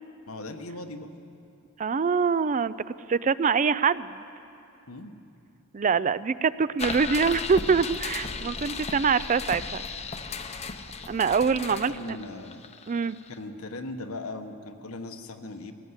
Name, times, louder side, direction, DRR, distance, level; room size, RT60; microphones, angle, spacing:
voice 1, 0.3-1.1 4.9-5.1 11.7-12.6 13.3-15.7, left 2 dB, 75° left, 7 dB, 1.3 m, -38 dB
voice 2, 1.8-4.2 5.7-9.8 11.1-12.2 12.9-13.2, right 5 dB, 35° right, 16 dB, 0.4 m, -24 dB
sound 1, 6.8-13.3, left 4 dB, 30° left, 0.8 m, -35 dB
20.0 x 17.5 x 8.1 m, 2.7 s
head